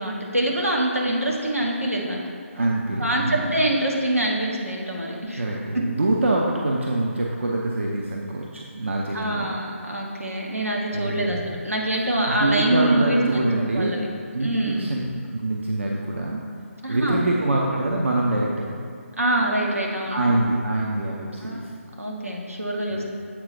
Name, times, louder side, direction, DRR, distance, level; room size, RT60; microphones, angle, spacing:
voice 1, 0.0-2.2 3.0-5.4 5.7-5.8 9.1-13.4 13.7-14.0 14.4-14.9 16.8-17.2 19.2-20.2 21.4-21.6 22.0-23.0, right 1 dB, 85° right, -2 dB, 1.3 m, -25 dB
voice 2, 2.5-3.5 5.4-9.6 10.9-11.5 12.3-13.9 14.3-15.0 15.3-16.4 16.9-18.8 20.1-21.7 22.9-23.0, right 2 dB, 60° right, -2 dB, 0.6 m, -25 dB
7.6 x 4.3 x 4.2 m, 2.4 s
figure-of-eight pair, 150°, 8 cm